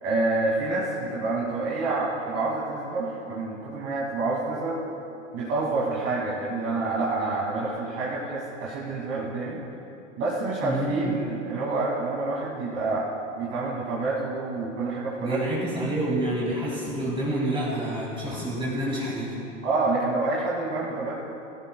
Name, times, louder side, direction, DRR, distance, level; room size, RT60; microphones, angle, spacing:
voice 1, 0.0-4.8 5.3-9.6 10.2-13.1 13.4-15.6 19.6-21.2, right 3 dB, 35° right, -6 dB, 2.4 m, -28 dB
voice 2, 10.6-11.2 15.2-19.4, right 1 dB, 15° right, -6 dB, 2.5 m, -28 dB
17.0 x 16.0 x 2.3 m, 2.8 s
hypercardioid pair, 105°, 38 cm